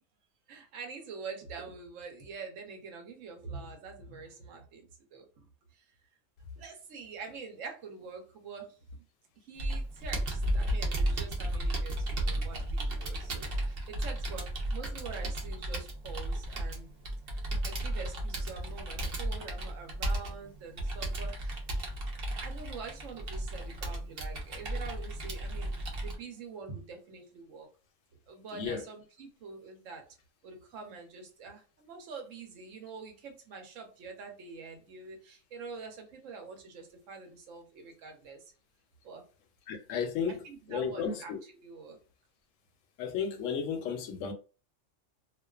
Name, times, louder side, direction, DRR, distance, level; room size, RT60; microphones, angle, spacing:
voice 1, 0.5-5.3 5.7-5.8 6.6-9.0 9.4-16.9 17.3-21.6 22.3-27.7 28.3-30.0 30.4-38.4 39.0-39.2 40.3-42.0, right 4 dB, 85° right, 1.1 m, -45 dB
Computer keyboard, 9.6-26.2, right 1 dB, 55° right, 0.8 m, -34 dB
voice 2, 39.7-40.4 40.7-41.4 43.0-44.3, left 6 dB, 85° left, 0.9 m, -33 dB
2.4 x 2.3 x 2.3 m
omnidirectional pair, 1.3 m